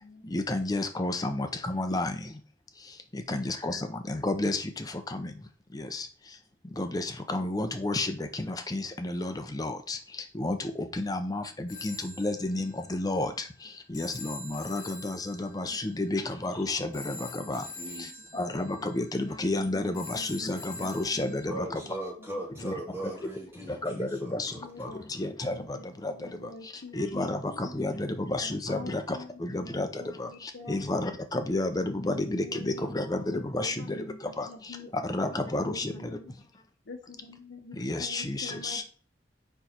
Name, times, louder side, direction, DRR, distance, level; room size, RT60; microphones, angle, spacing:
voice 1, 0.2-2.3 3.1-5.3 5.7-6.1 6.8-10.0 10.3-13.3 13.9-17.6 18.0-18.1 18.3-21.8 22.6-22.7 23.7-24.5 24.8-26.1 26.4-26.5 26.9-34.0 34.4-34.5 35.0-36.2 37.8-38.8, left 2 dB, 20° left, 7 dB, 0.6 m, -31 dB
Telephone, 11.7-21.5, left 3 dB, 45° left, 1.8 m, -46 dB
voice 2, 15.6-16.1 17.1-17.2 18.8-19.0 19.3-20.4 20.7-21.2 24.6-25.0 25.4-27.6 28.2-30.8 32.1-34.2 34.5-35.1 35.4-36.3 36.9-38.8, left 3 dB, 85° left, 2 dB, 0.7 m, -46 dB
voice 3, 17.4-18.3 21.5-25.2, right 1 dB, 15° right, -7 dB, 3.5 m, -40 dB
5.2 x 4.5 x 4.3 m, 0.40 s
head